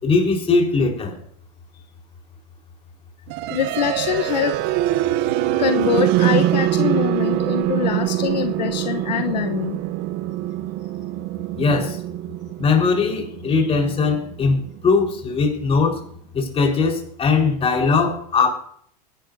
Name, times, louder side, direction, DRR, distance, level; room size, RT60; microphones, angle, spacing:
voice 1, 0.0-1.2 11.6-12.0 12.6-14.6 14.8-16.0 16.3-18.5, left 4 dB, 30° left, 2 dB, 4.3 m, -20 dB
sound 1, 3.3-15.2, right 14 dB, 50° right, 0.7 m, -24 dB
voice 2, 3.5-4.6 5.6-9.8, left 9 dB, 85° left, 8 dB, 0.9 m, -24 dB
23.5 x 11.5 x 2.7 m, 0.63 s
hypercardioid pair, 105°, 21 cm